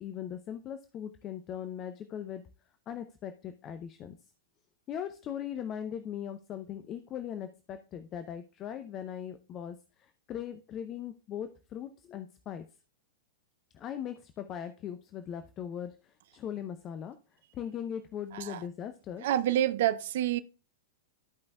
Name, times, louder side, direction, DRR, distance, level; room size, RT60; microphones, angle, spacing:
voice 1, 0.0-2.4 2.9-4.2 4.9-12.7 13.7-17.2 17.5-19.2, left 9 dB, 30° left, 0.6 m, -39 dB
voice 2, 19.2-20.4, right 12 dB, 55° right, 0.4 m, -28 dB
14.0 x 5.2 x 2.3 m
figure-of-eight pair, 100°, 0 cm